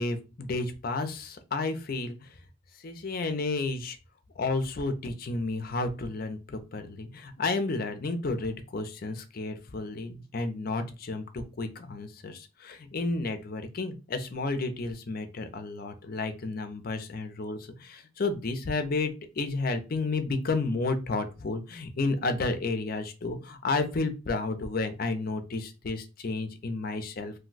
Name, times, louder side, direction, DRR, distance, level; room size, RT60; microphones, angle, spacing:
voice 1, 0.0-2.4 2.8-4.0 4.4-27.3, left 3 dB, 50° left, 8 dB, 0.5 m, -32 dB
2.6 x 2.2 x 3.8 m, 0.30 s
head